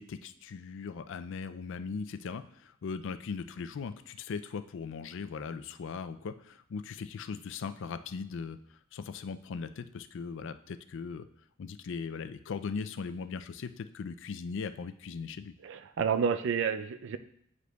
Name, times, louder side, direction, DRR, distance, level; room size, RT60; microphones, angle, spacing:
voice 1, 0.0-8.6 8.9-11.3 11.6-15.5, left 5 dB, 65° left, 11 dB, 0.4 m, -39 dB
voice 2, 15.6-17.2, right 6 dB, 65° right, 10 dB, 0.4 m, -30 dB
9.4 x 4.9 x 2.3 m, 0.70 s
head